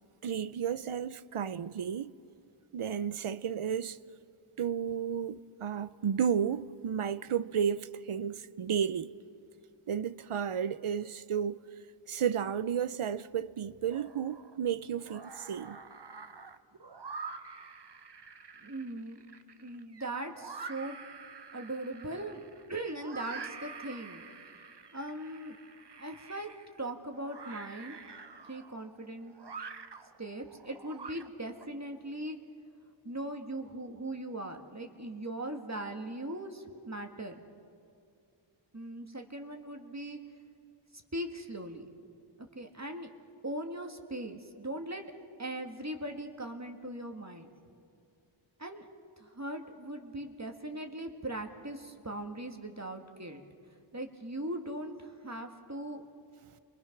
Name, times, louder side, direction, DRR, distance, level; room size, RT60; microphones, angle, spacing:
voice 1, 0.2-2.1 2.7-4.0 4.6-9.1 9.9-11.6 12.1-15.8, right 8 dB, 85° right, 0.7 m, -32 dB
sound 1, 13.9-14.6 14.9-31.7, right 4 dB, 55° right, 1.0 m, -47 dB
voice 2, 18.6-19.2 19.6-21.0 21.5-22.4 22.7-24.2 24.9-25.6 26.0-26.5 26.8-28.0 28.5-29.3 30.2-32.4 33.0-37.4 38.7-40.2 41.1-41.9 42.4-43.1 43.4-45.0 45.4-47.5 48.6-48.9 49.2-53.4 53.9-56.0, right 1 dB, 35° right, 1.8 m, -39 dB
29.5 x 23.0 x 5.9 m
wide cardioid pair, 45°, 49 cm